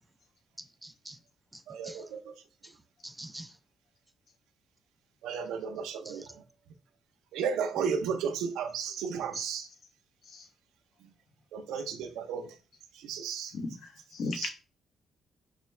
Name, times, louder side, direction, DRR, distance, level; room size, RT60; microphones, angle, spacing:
voice 1, 0.6-1.2 1.5-2.0 2.6-2.7 3.0-3.6 6.0-6.3 9.3-9.4, right 1 dB, 10° right, 0.4 m, -46 dB
voice 2, 1.7-2.3 5.2-6.3 7.3-9.7 11.0-11.1 11.5-12.5 13.0-13.5, right 6 dB, 90° right, 0.5 m, -34 dB
voice 3, 13.5-14.5, left 3 dB, 65° left, 1.0 m, -37 dB
4.9 x 2.2 x 3.2 m
cardioid pair, 90°, 0 cm